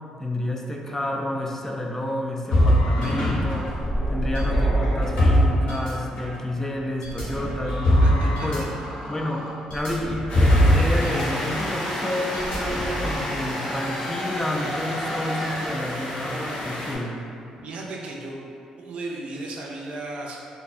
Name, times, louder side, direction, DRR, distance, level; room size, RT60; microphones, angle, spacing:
voice 1, 0.2-3.8 4.1-8.7 9.1-17.2, left 1 dB, 15° left, 0 dB, 0.3 m, -30 dB
sound 1, 2.5-6.4 7.0-11.2 11.5-11.7 12.3-13.2, equal, 80° left, 1.0 m, -22 dB
voice 2, 8.0-8.5 17.6-18.4 18.8-20.4, right 2 dB, 60° right, -2 dB, 0.4 m, -35 dB
sound 2, 10.3-16.9, left 1 dB, 60° left, 0.6 m, -32 dB
sound 3, 11.0-17.1, equal, 5° right, 0.9 m, -35 dB
2.5 x 2.2 x 2.6 m, 2.5 s
supercardioid pair, 65°, 2 cm